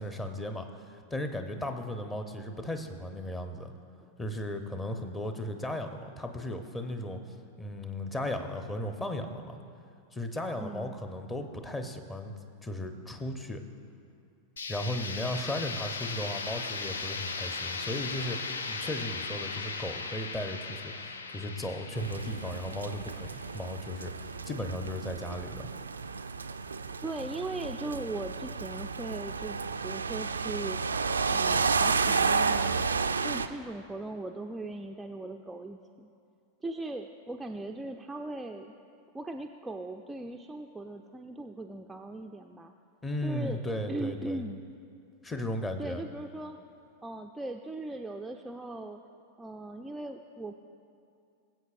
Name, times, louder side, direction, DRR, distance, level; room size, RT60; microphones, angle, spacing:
voice 1, 0.0-3.7 4.2-7.2 7.6-9.6 10.1-12.3 12.6-13.6 14.7-18.4 18.7-25.7 43.0-44.4 45.2-46.0, left 1 dB, 15° left, 6 dB, 0.8 m, -36 dB
voice 2, 10.6-11.0 27.0-30.8 31.3-32.9 33.2-36.1 36.6-38.7 39.1-42.7 43.2-43.6 43.9-44.6 45.8-46.6 47.0-49.0 49.4-50.5, right 2 dB, 10° right, 3 dB, 0.4 m, -39 dB
sound 1, 14.6-24.3, left 4 dB, 70° left, 0.5 m, -38 dB
sound 2, 22.0-33.5, right 5 dB, 75° right, 0.3 m, -31 dB
22.0 x 8.0 x 2.5 m, 2.4 s
figure-of-eight pair, 90°, 0 cm